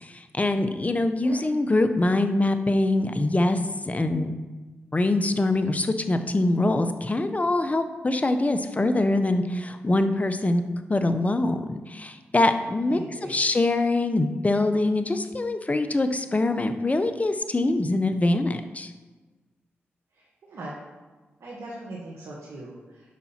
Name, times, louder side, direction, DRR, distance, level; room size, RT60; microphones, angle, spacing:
voice 1, 0.0-3.6 3.9-4.4 4.9-10.6 10.9-13.0 13.3-18.9, left 2 dB, 30° left, 9 dB, 0.9 m, -24 dB
voice 2, 12.8-13.4 20.1-20.8 21.4-23.1, right 2 dB, 75° right, -5 dB, 1.7 m, -40 dB
7.4 x 5.4 x 5.8 m, 1.3 s
supercardioid pair, 40°, 5 cm